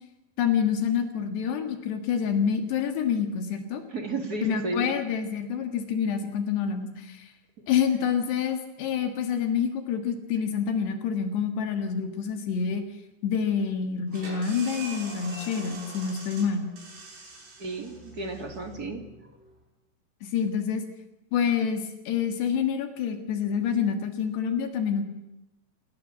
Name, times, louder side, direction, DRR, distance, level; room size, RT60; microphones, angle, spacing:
voice 1, 0.4-3.8 4.4-7.3 7.7-12.8 13.2-16.7 20.2-20.8 21.3-25.1, left 7 dB, 80° left, 6 dB, 4.0 m, -27 dB
voice 2, 3.9-4.8 17.6-19.3, right 3 dB, 30° right, 5 dB, 2.0 m, -33 dB
sound 1, 14.1-19.5, right 2 dB, 80° right, 9.2 m, -43 dB
29.0 x 19.0 x 7.6 m, 0.96 s
omnidirectional pair, 4.8 m